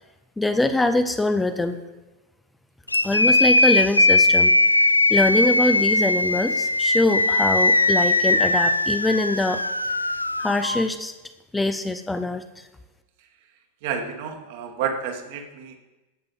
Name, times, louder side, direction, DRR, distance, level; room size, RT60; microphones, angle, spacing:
voice 1, 0.4-1.8 3.0-4.5 5.1-9.6 10.4-11.1 11.5-12.4, left 2 dB, 10° left, 9 dB, 0.6 m, -23 dB
sound 1, 2.9-10.8, left 2 dB, 85° left, 0.3 m, -20 dB
voice 2, 13.8-15.8, right 7 dB, 50° right, 5 dB, 1.5 m, -30 dB
15.5 x 6.6 x 4.1 m, 1.1 s
figure-of-eight pair, 90°, 0 cm